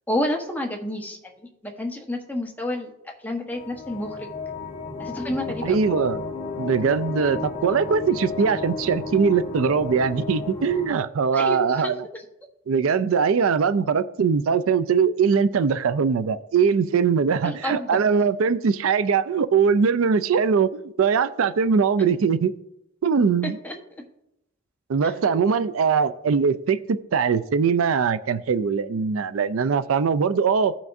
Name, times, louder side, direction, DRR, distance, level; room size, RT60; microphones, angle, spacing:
voice 1, 0.1-2.9 3.2-4.3 5.0-5.9 11.3-12.2 17.4-17.9 23.4-23.7 25.0-25.4, left 1 dB, 10° left, 1 dB, 1.1 m, -30 dB
sound 1, 3.5-10.9, left 4 dB, 30° left, 1.4 m, -33 dB
voice 2, 5.6-6.2 6.6-11.9 12.7-22.5 23.0-23.6 24.9-30.7, right 6 dB, 75° right, 14 dB, 0.4 m, -21 dB
15.5 x 5.8 x 2.6 m, 0.83 s
head